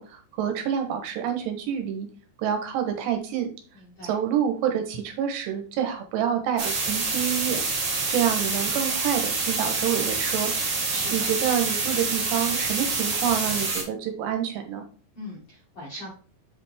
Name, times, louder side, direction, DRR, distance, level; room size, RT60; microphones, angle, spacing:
voice 1, 0.0-2.1 2.4-3.5 4.0-7.6 8.1-10.5 11.1-14.8, right 9 dB, 75° right, 5 dB, 3.2 m, -27 dB
voice 2, 3.7-4.1 10.9-11.3 15.2-16.1, left 1 dB, 50° left, -5 dB, 1.8 m, -40 dB
sound 1, 6.6-13.8, right 3 dB, 45° right, 2.3 m, -27 dB
8.1 x 5.0 x 3.5 m, 0.38 s
omnidirectional pair, 5.1 m